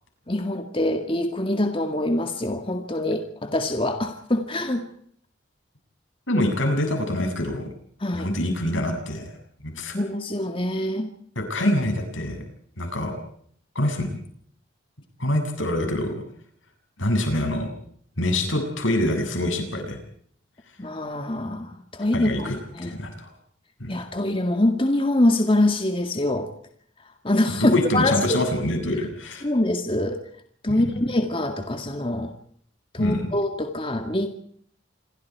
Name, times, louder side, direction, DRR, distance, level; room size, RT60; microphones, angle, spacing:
voice 1, 0.3-4.8 8.0-8.3 9.9-11.1 20.8-22.5 22.7-23.0 23.9-26.5 27.2-28.4 29.4-30.2 30.6-32.3 32.9-34.3, left 1 dB, 25° left, 5 dB, 2.0 m, -24 dB
voice 2, 6.3-7.7 8.1-9.4 9.6-10.0 11.4-12.4 12.8-13.2 13.8-14.2 15.2-16.2 17.0-17.7 18.2-20.0 22.1-22.6 22.8-23.3 23.8-23.9 27.6-29.5 30.7-31.0 33.0-33.2, left 1 dB, 80° left, 5 dB, 7.3 m, -25 dB
27.5 x 23.0 x 4.8 m, 0.62 s
head